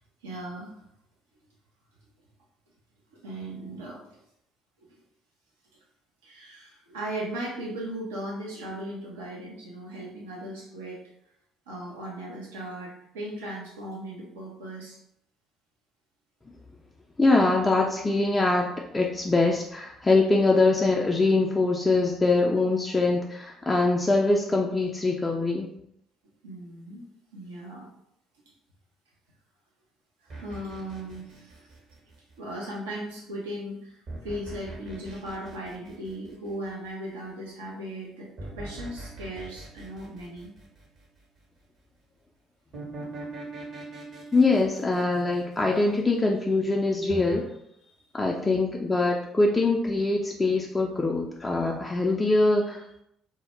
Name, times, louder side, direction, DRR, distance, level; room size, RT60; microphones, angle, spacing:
voice 1, 0.2-0.8 3.1-4.2 4.9-5.0 6.2-11.0 11.7-15.0 26.4-27.1 27.3-27.9 30.2-31.7 32.4-38.3 38.6-40.5 48.4-48.6, right 1 dB, 75° right, -4 dB, 0.5 m, -37 dB
voice 2, 17.2-25.7 44.3-47.5 48.1-53.0, left 3 dB, 20° left, -1 dB, 0.3 m, -23 dB
sound 1, 30.3-32.5 34.1-36.7 38.4-41.2 42.7-46.2 47.1-47.4, right 2 dB, 45° right, 0.8 m, -41 dB
2.1 x 2.0 x 3.2 m, 0.76 s
figure-of-eight pair, 50°, 0 cm